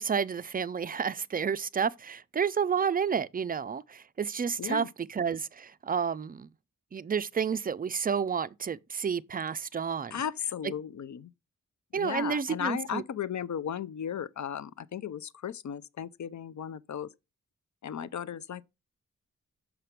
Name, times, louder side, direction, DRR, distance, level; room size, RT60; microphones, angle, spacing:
voice 1, 0.0-6.5 6.9-10.2 10.6-10.7 11.9-13.0, right 6 dB, 25° right, 0.3 m, -30 dB
voice 2, 10.1-11.3 11.9-17.1 17.8-18.6, left 8 dB, 55° left, 0.5 m, -35 dB
5.9 x 3.3 x 5.8 m
cardioid pair, 55°, 34 cm